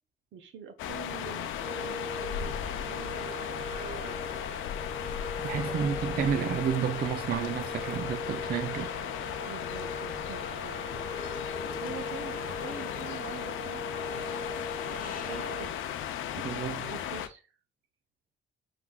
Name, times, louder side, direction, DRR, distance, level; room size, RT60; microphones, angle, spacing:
voice 1, 0.3-4.4 5.6-6.5 9.4-10.8 11.5-14.2 14.9-15.8 16.9-17.5, right 6 dB, 75° right, 1.0 m, -46 dB
sound 1, 0.8-17.3, left 10 dB, 80° left, 0.5 m, -36 dB
sound 2, 1.6-15.7, left 1 dB, 30° right, 1.4 m, -40 dB
voice 2, 5.4-8.9 16.4-16.9, right 8 dB, 50° right, 0.5 m, -31 dB
sound 3, 8.8-16.4, left 5 dB, 45° left, 0.7 m, -48 dB
4.8 x 3.7 x 2.3 m
cardioid pair, 90°, 20 cm